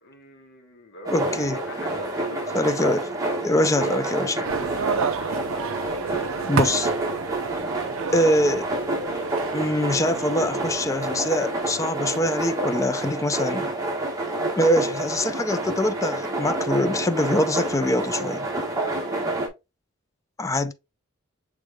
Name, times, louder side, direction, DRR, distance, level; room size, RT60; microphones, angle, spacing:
voice 1, 0.0-2.7 18.7-19.3, left 1 dB, 55° left, 1.1 m, -41 dB
sound 1, 1.0-19.5, right 2 dB, 15° right, 1.2 m, -28 dB
voice 2, 1.1-1.6 2.5-3.1 3.4-4.4 6.5-6.9 8.1-8.7 9.5-13.7 14.6-18.5 20.4-20.7, left 1 dB, 15° left, 0.4 m, -23 dB
sound 2, 4.4-12.2, right 6 dB, 65° right, 0.4 m, -32 dB
6.3 x 3.5 x 2.2 m
head